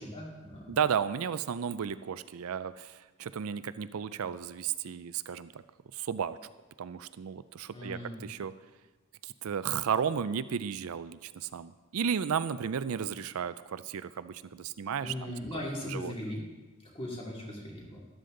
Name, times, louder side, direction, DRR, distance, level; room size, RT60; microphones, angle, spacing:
voice 1, 0.0-0.8 7.7-8.2 15.0-16.4 16.9-18.0, left 1 dB, 25° left, -2 dB, 2.5 m, -38 dB
voice 2, 0.7-5.5 5.9-6.4 6.8-8.5 9.2-16.1, right 7 dB, 75° right, 14 dB, 0.4 m, -34 dB
13.0 x 11.5 x 3.8 m, 1.2 s
head